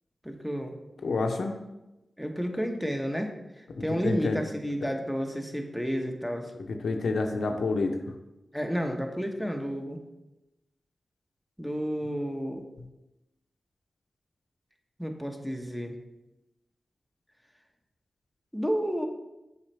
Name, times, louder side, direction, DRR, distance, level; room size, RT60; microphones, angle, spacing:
voice 1, 0.2-0.7 2.2-3.3 3.8-6.5 8.5-10.0 11.6-12.6 15.0-16.0 18.5-19.1, equal, ahead, 3 dB, 0.9 m, -31 dB
voice 2, 1.0-1.5 3.8-4.4 6.7-8.0, left 3 dB, 85° left, 4 dB, 0.6 m, -28 dB
7.3 x 4.2 x 3.3 m, 0.96 s
cardioid pair, 50°, 0 cm